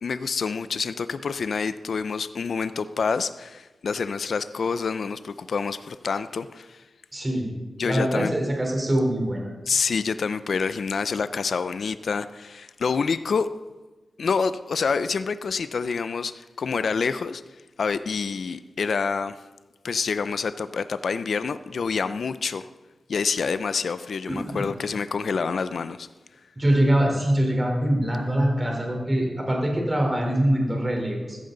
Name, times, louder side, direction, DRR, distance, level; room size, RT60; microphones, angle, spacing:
voice 1, 0.0-6.8 7.8-8.3 9.7-13.5 14.2-17.4 17.8-19.4 19.8-22.7 23.1-26.1, left 5 dB, 70° left, 13 dB, 0.5 m, -27 dB
voice 2, 7.1-7.5 7.8-9.5 24.3-24.7 26.6-31.4, right 1 dB, 20° right, 0 dB, 3.8 m, -23 dB
14.5 x 14.5 x 4.0 m, 1.2 s
wide cardioid pair, 110°, 0 cm